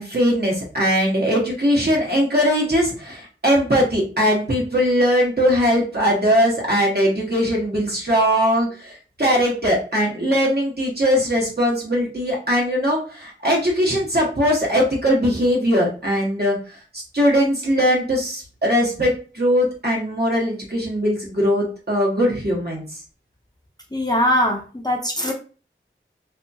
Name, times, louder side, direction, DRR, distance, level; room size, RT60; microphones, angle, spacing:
voice 1, 0.0-16.6 16.9-22.8, equal, 50° right, -3 dB, 1.2 m, -20 dB
voice 2, 23.9-25.3, equal, 20° left, 0 dB, 0.6 m, -21 dB
2.7 x 2.3 x 2.7 m, 0.37 s
wide cardioid pair, 40°, 21 cm